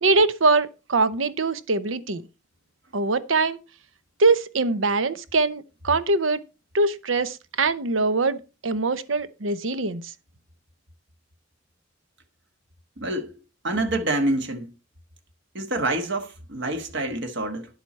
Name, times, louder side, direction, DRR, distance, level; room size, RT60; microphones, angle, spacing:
voice 1, 0.0-2.2 2.9-3.6 4.2-6.4 6.7-10.1, right 3 dB, 90° right, 0.8 m, -23 dB
voice 2, 13.0-13.3 13.6-14.7 15.5-17.7, right 2 dB, 65° right, 1.4 m, -27 dB
10.5 x 8.0 x 4.2 m
head